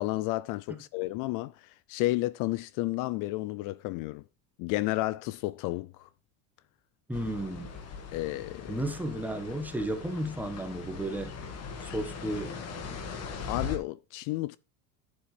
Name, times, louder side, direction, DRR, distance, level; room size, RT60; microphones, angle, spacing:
voice 1, 0.0-4.2 4.6-6.1 8.1-8.8 11.9-12.0 13.5-14.6, left 18 dB, 60° left, 0.5 m, -32 dB
sound 1, 7.1-13.8, left 5 dB, 45° left, 1.9 m, -40 dB
voice 2, 7.1-7.8 8.7-11.3 11.8-12.5, right 1 dB, 5° right, 1.4 m, -33 dB
10.0 x 7.7 x 3.3 m
supercardioid pair, 125°, 36 cm